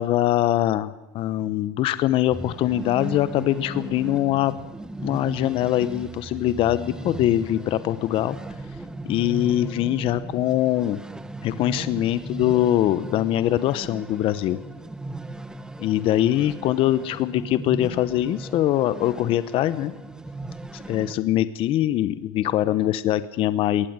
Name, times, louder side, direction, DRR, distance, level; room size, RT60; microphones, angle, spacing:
voice 1, 0.0-4.5 5.0-8.4 9.0-11.0 11.4-14.6 15.8-19.9 20.7-23.9, left 13 dB, 45° left, 15 dB, 1.0 m, -23 dB
sound 1, 2.3-21.1, right 2 dB, 5° right, 1.2 m, -37 dB
20.5 x 19.0 x 9.0 m, 1.0 s
supercardioid pair, 140°, 13 cm